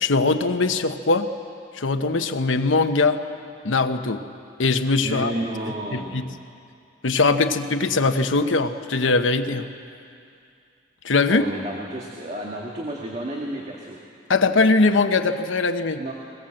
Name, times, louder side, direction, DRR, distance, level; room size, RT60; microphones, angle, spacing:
voice 1, 0.0-1.3 1.7-3.2 3.6-4.2 4.6-5.3 5.9-6.3 7.0-9.7 11.0-11.4 14.3-16.0, left 3 dB, 90° left, 7 dB, 1.0 m, -21 dB
voice 2, 5.0-6.3 11.3-14.0 16.0-16.1, right 1 dB, 35° right, -2 dB, 1.8 m, -31 dB
21.0 x 20.0 x 7.8 m, 2.4 s
head